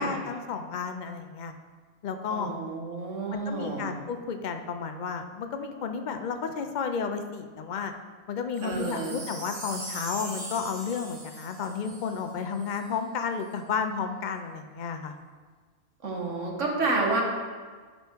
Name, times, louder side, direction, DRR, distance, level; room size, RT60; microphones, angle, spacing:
voice 1, 0.0-1.5 2.0-2.5 3.3-7.9 8.3-15.1, left 6 dB, 60° left, 6 dB, 0.4 m, -32 dB
voice 2, 2.3-3.9 8.6-9.2 16.0-17.2, right 3 dB, 60° right, 0 dB, 1.6 m, -29 dB
Wind chime, 8.5-12.9 13.4-13.5, right 1 dB, 25° right, 1.7 m, -41 dB
10.5 x 5.5 x 4.5 m, 1.5 s
omnidirectional pair, 1.5 m